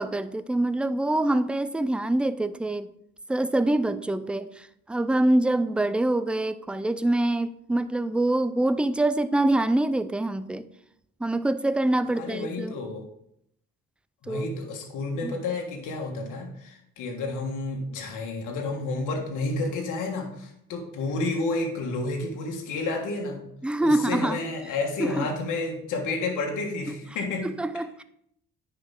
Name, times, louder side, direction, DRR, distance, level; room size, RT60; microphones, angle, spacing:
voice 1, 0.0-2.9 3.3-10.7 11.2-12.7 14.3-14.5 15.2-15.3 23.6-24.4 25.0-25.3 27.4-28.0, right 1 dB, 5° right, 13 dB, 0.3 m, -25 dB
voice 2, 12.1-13.0 14.2-23.4 23.8-27.5, left 3 dB, 85° left, 1 dB, 1.6 m, -30 dB
9.8 x 4.8 x 3.6 m, 0.74 s
cardioid pair, 90°, 30 cm